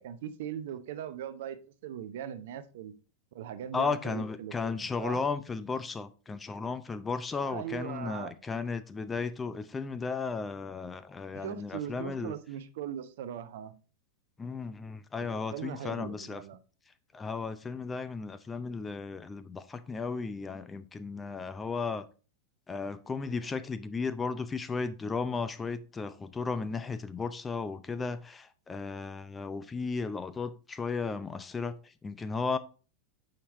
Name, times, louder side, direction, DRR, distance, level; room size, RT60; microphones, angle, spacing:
voice 1, 0.0-2.9 3.3-5.2 7.4-8.3 11.3-13.7 15.3-16.6, right 10 dB, 55° right, 0.6 m, -40 dB
voice 2, 3.7-12.4 14.4-16.4 17.1-22.0 22.7-32.6, left 4 dB, 15° left, 0.5 m, -35 dB
6.5 x 5.6 x 3.1 m
figure-of-eight pair, 90°, 0 cm